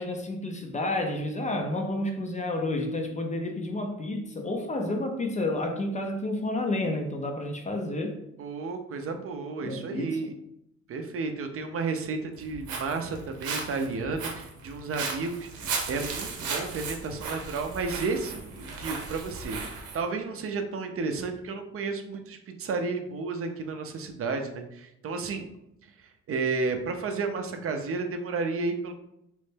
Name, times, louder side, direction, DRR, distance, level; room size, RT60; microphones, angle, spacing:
voice 1, 0.0-8.2 9.6-10.2, left 1 dB, 25° left, 4 dB, 0.4 m, -30 dB
voice 2, 8.4-10.3 10.9-15.5 15.9-25.5 25.8-28.9, right 4 dB, 50° right, 6 dB, 0.4 m, -32 dB
Walk footsteps, 12.3-20.0, right 4 dB, 85° right, 0.7 m, -36 dB
3.0 x 2.1 x 3.2 m, 0.82 s
cardioid pair, 90°, 30 cm